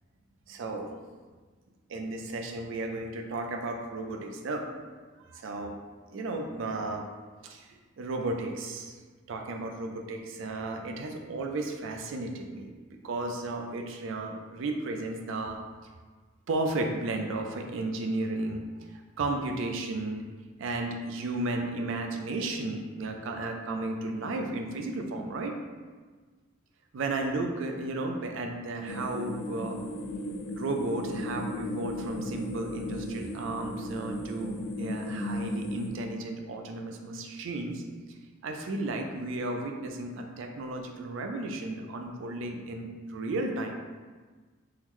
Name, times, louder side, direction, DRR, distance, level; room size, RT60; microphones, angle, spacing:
voice 1, 0.5-0.9 1.9-4.7 5.3-5.8 6.1-7.1 7.4-7.7 8.0-9.0 9.3-12.7 13.0-15.6 16.5-18.9 19.2-20.2 20.6-25.6 26.9-29.8 30.5-37.8 38.4-43.7, right 2 dB, 70° right, 3 dB, 0.4 m, -34 dB
sound 1, 28.9-35.9, left 1 dB, 65° left, 0.4 m, -36 dB
3.8 x 2.1 x 3.0 m, 1.4 s
head